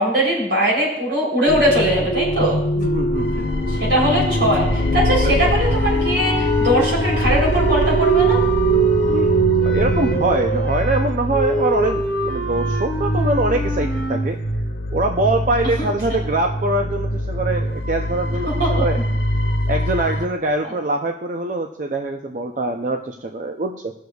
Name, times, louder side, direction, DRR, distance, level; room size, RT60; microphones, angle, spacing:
voice 1, 0.0-2.6 3.7-8.4 18.6-18.7, equal, 70° right, -3 dB, 3.4 m, -20 dB
sound 1, 1.5-10.4, right 2 dB, 45° left, 0.9 m, -21 dB
voice 2, 2.8-3.5 9.1-9.3 9.6-14.4 14.9-19.0 19.7-23.9, right 2 dB, 45° right, 4 dB, 0.5 m, -23 dB
sound 2, 3.1-20.2, equal, 80° left, 1.4 m, -25 dB
sound 3, 5.6-14.3, equal, ahead, 1.9 m, -26 dB
18.0 x 6.5 x 2.3 m, 0.81 s
head